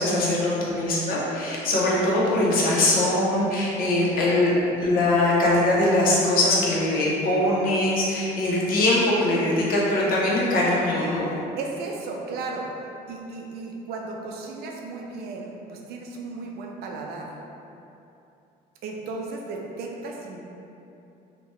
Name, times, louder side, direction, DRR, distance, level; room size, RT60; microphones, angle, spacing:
voice 1, 0.0-11.3, left 1 dB, 60° left, -5 dB, 0.7 m, -22 dB
voice 2, 11.3-12.7 13.1-17.3 18.8-20.4, right 3 dB, 70° right, 0 dB, 0.4 m, -35 dB
2.8 x 2.2 x 2.9 m, 2.8 s
cardioid pair, 110°, 17 cm